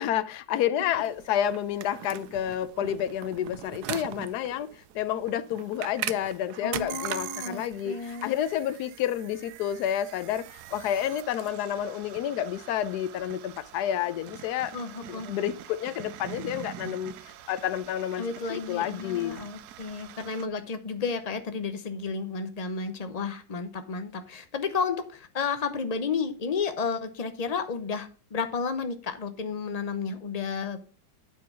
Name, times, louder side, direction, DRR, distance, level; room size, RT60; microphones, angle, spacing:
voice 1, 0.0-4.7 4.9-14.7 15.1-17.1 17.5-18.2 18.5-19.5, left 10 dB, 75° left, 1.1 m, -30 dB
sound 1, 0.9-20.5, right 13 dB, 75° right, 1.1 m, -42 dB
voice 2, 6.6-8.4 14.7-15.3 18.2-30.8, left 5 dB, 40° left, 0.5 m, -32 dB
9.2 x 4.7 x 5.7 m
omnidirectional pair, 1.8 m